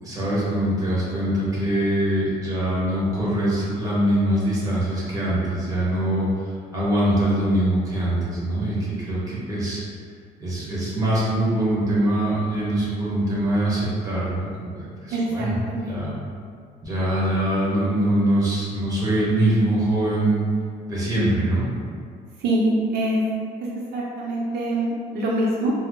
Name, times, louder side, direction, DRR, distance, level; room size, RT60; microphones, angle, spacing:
voice 1, 0.0-9.8 10.4-16.1 16.8-20.4 20.9-21.6, right 1 dB, 20° right, -7 dB, 1.2 m, -23 dB
voice 2, 15.1-16.0 22.4-23.2 23.9-25.7, right 1 dB, 75° right, -4 dB, 0.6 m, -24 dB
4.0 x 2.0 x 2.9 m, 2.1 s
cardioid pair, 110°, 17 cm